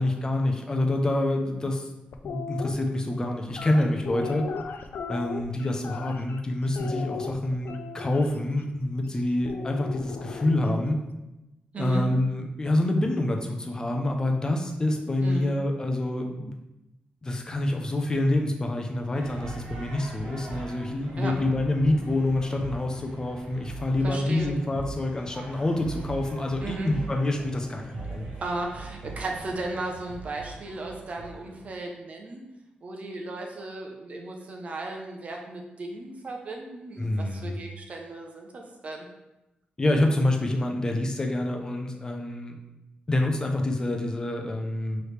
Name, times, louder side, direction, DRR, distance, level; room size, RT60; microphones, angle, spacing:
voice 1, 0.0-1.9 2.2-4.5 5.1-11.0 11.8-16.5 17.2-28.3 37.0-37.6 39.8-42.6 43.1-45.0, left 1 dB, 20° left, 2 dB, 0.5 m, -27 dB
sound 1, 2.1-2.7 3.5-6.4 6.7-8.3 9.4-10.8, left 5 dB, 80° left, 0.3 m, -36 dB
voice 2, 11.7-12.1 15.2-15.5 21.2-21.3 24.0-24.5 26.6-26.9 28.4-32.4 32.8-39.1, right 2 dB, 45° right, 1 dB, 0.7 m, -35 dB
sound 2, 19.1-31.6, right 3 dB, 90° right, 1.0 m, -41 dB
4.7 x 3.2 x 3.2 m, 0.96 s
wide cardioid pair, 150°, 3 cm